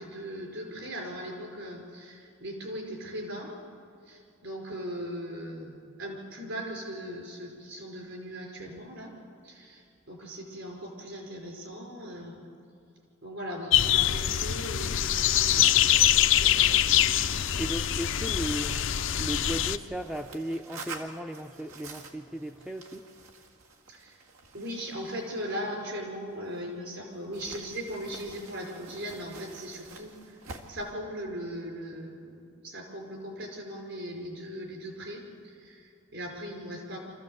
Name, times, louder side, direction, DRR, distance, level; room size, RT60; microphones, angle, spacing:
voice 1, 0.0-3.5 4.0-9.1 9.4-12.5 13.2-17.3 23.9-24.2 24.5-30.4 30.7-37.0, equal, 60° right, 1 dB, 5.1 m, -39 dB
sound 1, 13.7-19.8, left 11 dB, 60° left, 0.6 m, -24 dB
sound 2, 14.1-26.8 27.3-30.9, right 3 dB, 85° right, 2.1 m, -49 dB
voice 2, 17.6-18.8 19.2-23.1, right 1 dB, 5° right, 5 dB, 0.5 m, -35 dB
25.5 x 15.0 x 8.0 m, 2.5 s
head